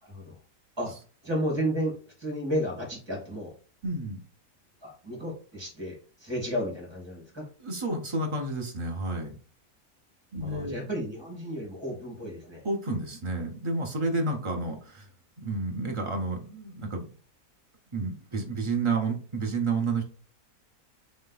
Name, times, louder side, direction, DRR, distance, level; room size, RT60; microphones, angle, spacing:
voice 1, 0.0-0.3 0.8-0.9 1.2-3.5 4.8-7.5 10.4-12.6, equal, 15° right, -2 dB, 1.6 m, -33 dB
voice 2, 3.8-4.2 7.6-9.4 10.3-10.8 12.6-15.1 15.4-17.1 17.9-20.0, right 3 dB, 50° right, 1 dB, 0.3 m, -30 dB
3.3 x 3.2 x 3.8 m, 0.39 s
omnidirectional pair, 1.6 m